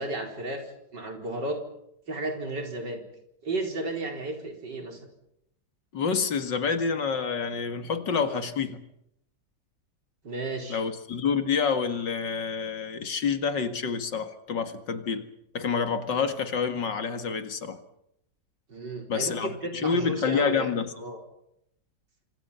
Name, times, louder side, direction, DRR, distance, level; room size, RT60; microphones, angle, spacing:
voice 1, 0.0-1.6 2.1-3.0 3.4-5.1 10.2-10.8 18.7-20.7 20.9-21.2, right 2 dB, 70° right, 3 dB, 5.0 m, -33 dB
voice 2, 5.9-8.8 10.7-15.3 15.5-17.8 19.1-20.9, left 5 dB, 75° left, 8 dB, 2.6 m, -28 dB
28.5 x 26.0 x 5.7 m, 0.78 s
omnidirectional pair, 1.9 m